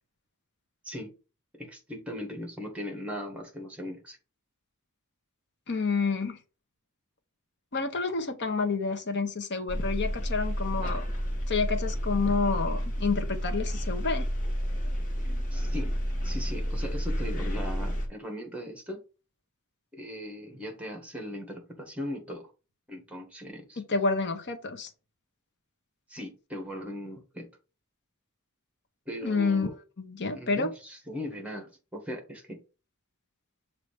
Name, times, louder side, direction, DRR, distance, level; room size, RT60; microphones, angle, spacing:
voice 1, 1.5-4.2 15.5-16.0 16.2-19.0 19.9-22.5 22.9-23.8 26.1-27.5 29.1-29.7 30.3-32.6, left 1 dB, 5° right, 1.6 m, -39 dB
voice 2, 5.7-6.4 7.7-11.0 11.5-14.3 23.8-24.9 29.2-30.7, left 4 dB, 55° left, 1.1 m, -29 dB
sound 1, 9.7-18.1, equal, 40° left, 1.5 m, -30 dB
6.5 x 2.9 x 5.0 m
head